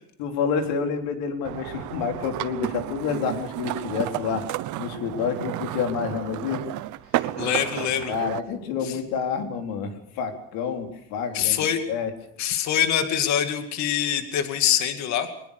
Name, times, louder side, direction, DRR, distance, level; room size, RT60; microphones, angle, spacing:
voice 1, 0.2-4.5 4.8-6.6 8.1-12.1, left 6 dB, 65° left, 4 dB, 4.0 m, -28 dB
sound 1, 1.4-8.4, right 16 dB, 50° right, 1.0 m, -32 dB
voice 2, 7.4-8.1 8.8-9.0 11.3-11.8 12.4-15.3, left 9 dB, 45° left, 8 dB, 2.3 m, -24 dB
24.0 x 20.0 x 6.6 m, 0.70 s
cardioid pair, 165°, 38 cm